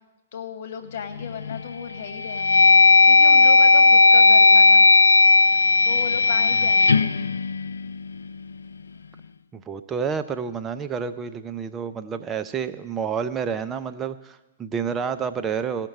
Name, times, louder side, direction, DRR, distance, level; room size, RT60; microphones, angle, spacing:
voice 1, 0.3-2.6 3.1-4.9 5.8-7.2, left 7 dB, 60° left, 9 dB, 1.3 m, -35 dB
sound 1, 1.2-1.6 2.1-8.3, left 3 dB, 80° left, 0.3 m, -16 dB
voice 2, 9.5-15.9, right 6 dB, 20° right, 10 dB, 0.5 m, -29 dB
17.0 x 5.9 x 6.5 m, 1.1 s
hypercardioid pair, 115°, 0 cm